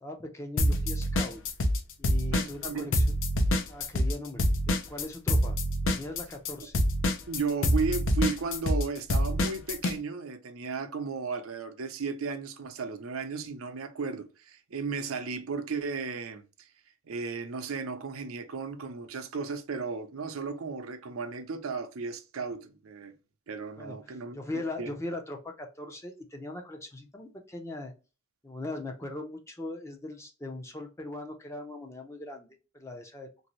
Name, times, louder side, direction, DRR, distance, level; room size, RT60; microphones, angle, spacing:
voice 1, 0.0-1.4 2.0-3.0 3.7-4.5 4.9-5.6 5.8-6.8 23.8-27.9 28.4-33.3, left 2 dB, 15° left, 0.5 m, -40 dB
sound 1, 0.6-1.8 2.0-10.0, equal, 65° left, 0.6 m, -26 dB
voice 2, 2.3-2.9 7.3-16.7 17.1-23.1 23.5-24.9, right 4 dB, 80° right, 0.6 m, -35 dB
3.4 x 2.6 x 3.0 m
head